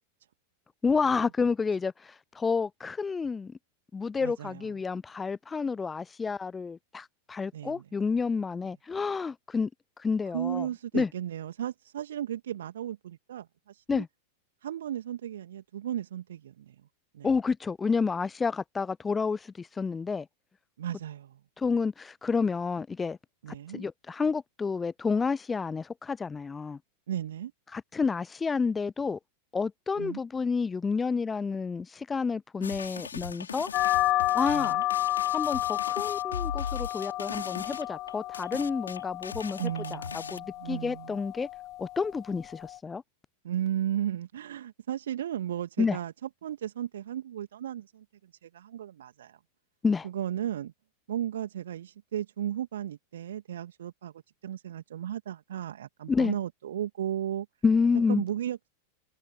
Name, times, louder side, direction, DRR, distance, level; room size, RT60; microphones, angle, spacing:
voice 1, 0.8-3.6 3.9-9.7 10.0-10.7 10.9-11.1 13.9-14.1 17.2-20.3 21.6-23.2 23.7-26.8 27.7-29.2 29.5-33.7 34.3-34.8 35.3-39.7 40.1-41.5 41.8-43.0 45.8-46.0 49.8-50.1 56.1-56.3 57.6-58.2, left 5 dB, 15° left, 0.5 m, -29 dB
voice 2, 4.2-4.7 7.5-7.9 10.3-14.0 14.6-16.8 17.1-17.3 20.8-21.4 23.4-23.9 27.1-27.5 30.0-30.2 34.5-34.8 39.6-41.2 43.4-49.4 50.0-50.7 51.1-54.1 54.4-57.5 58.1-58.7, right 11 dB, 60° right, 2.1 m, -35 dB
sound 1, 32.6-40.4, left 6 dB, 70° left, 3.9 m, -38 dB
sound 2, 33.7-42.8, left 16 dB, 35° left, 1.7 m, -31 dB
figure-of-eight pair, 90°, 0 cm